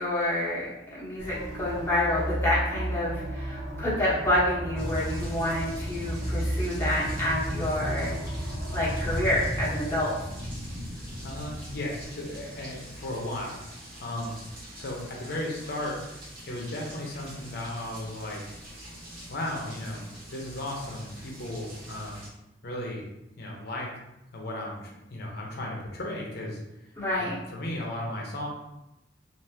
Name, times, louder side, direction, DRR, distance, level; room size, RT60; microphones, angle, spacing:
voice 1, 0.0-8.1 8.7-10.1 27.0-27.4, left 1 dB, 15° left, -9 dB, 1.2 m, -28 dB
sound 1, 1.2-9.2, right 1 dB, 80° right, 1.2 m, -33 dB
sound 2, 4.8-22.3, equal, 50° right, 1.1 m, -39 dB
voice 2, 11.2-13.7 14.0-14.4 14.7-16.0 16.5-18.4 19.3-22.2 22.6-23.0 23.4-23.9 24.3-26.6 27.2-28.5, left 1 dB, 60° left, -2 dB, 0.9 m, -35 dB
3.4 x 2.7 x 2.8 m, 0.90 s
head